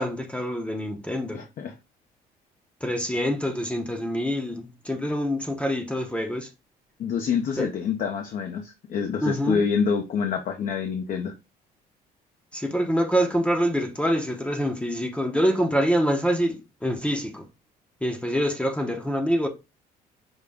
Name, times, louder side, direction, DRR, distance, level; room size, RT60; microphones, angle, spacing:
voice 1, 0.0-1.4 2.8-6.5 7.6-7.7 9.2-9.7 12.5-17.5 18.0-19.5, equal, 5° left, 0.7 m, -25 dB
voice 2, 1.3-1.7 7.0-11.3, left 6 dB, 55° left, 0.7 m, -27 dB
5.4 x 2.2 x 3.5 m
cardioid pair, 110°, 17 cm